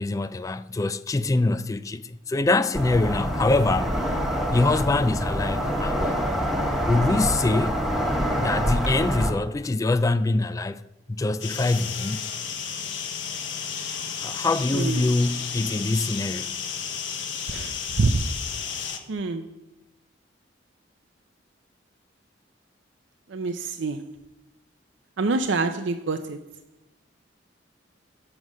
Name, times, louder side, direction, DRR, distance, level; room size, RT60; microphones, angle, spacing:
voice 1, 0.0-4.0 4.5-6.2 6.9-7.8 8.4-10.8 11.1-12.3 14.2-16.6, left 2 dB, 20° left, 0.3 m, -24 dB
sound 1, 2.7-9.3, equal, ahead, 1.4 m, -26 dB
sound 2, 11.4-19.0, left 7 dB, 80° left, 1.2 m, -32 dB
voice 2, 14.7-15.1 17.5-18.3 19.1-19.5 23.3-24.1 25.2-26.4, right 3 dB, 80° right, 0.6 m, -26 dB
7.8 x 7.3 x 6.2 m
head